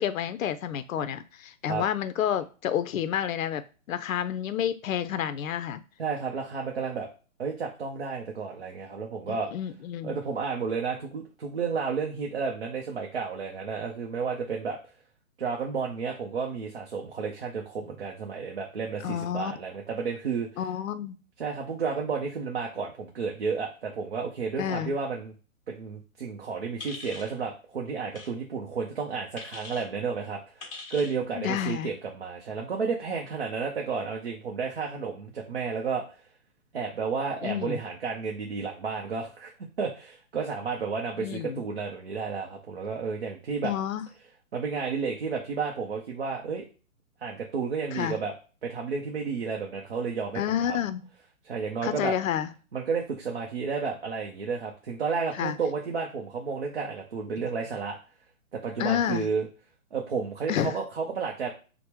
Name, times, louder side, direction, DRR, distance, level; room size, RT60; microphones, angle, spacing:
voice 1, 0.0-5.8 9.3-10.2 19.0-19.5 20.6-21.2 24.6-24.9 31.3-31.9 37.4-37.8 41.2-41.6 43.6-44.0 47.9-48.2 50.4-51.1 51.8-52.5 55.3-55.6 58.8-59.3 60.5-60.7, left 10 dB, 75° left, 12 dB, 0.5 m, -29 dB
voice 2, 6.0-7.1 7.4-9.5 10.0-14.8 15.4-20.5 21.4-25.3 25.7-36.0 36.7-39.5 39.8-43.7 44.5-46.7 47.2-48.3 48.6-50.8 51.4-52.1 52.7-58.0 58.5-59.5 59.9-61.5, right 5 dB, 45° right, 0 dB, 0.6 m, -32 dB
sound 1, 26.8-27.3 28.1-28.3 29.4-29.9 30.6-31.2, left 3 dB, 20° left, 1.2 m, -41 dB
3.4 x 2.1 x 2.9 m, 0.35 s
hypercardioid pair, 170°, 41 cm